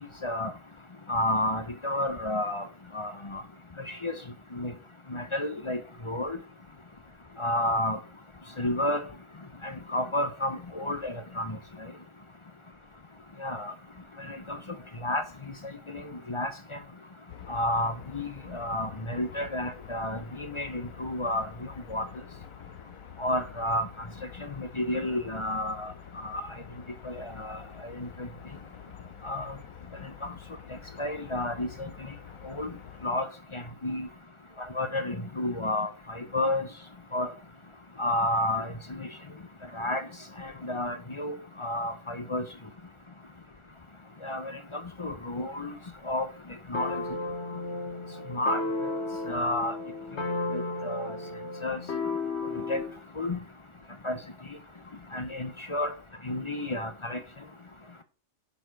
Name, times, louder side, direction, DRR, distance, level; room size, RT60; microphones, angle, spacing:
voice 1, 0.2-0.5 1.1-2.7 2.9-3.4 3.9-4.2 4.5-4.7 5.1-5.8 6.1-6.4 7.4-8.0 8.6-9.0 9.6-11.6 13.4-13.7 14.3-14.6 15.0-15.2 15.9-16.0 16.3-16.8 17.5-21.5 21.9-22.1 23.2-24.1 24.4-25.9 26.2-26.4 27.0-27.6 27.9-28.3 29.2-29.5 30.2-30.3 31.0-31.9 32.4-32.7 33.0-33.3 33.5-34.1 34.7-36.7 37.1-37.3 38.0-39.1 39.7-40.1 40.4-42.4 44.2-45.7 46.0-46.3 46.7-47.0 48.3-48.6 49.3-49.8 50.5-51.1 51.6-51.8 52.7-52.8 53.2-53.4 54.0-54.2 55.1-55.9 56.2-57.2, left 1 dB, 30° left, 0.7 m, -31 dB
sound 1, 17.3-33.1, left 10 dB, 90° left, 1.2 m, -48 dB
sound 2, 46.7-53.0, left 2 dB, 55° left, 1.7 m, -33 dB
10.5 x 6.7 x 4.6 m
omnidirectional pair, 1.4 m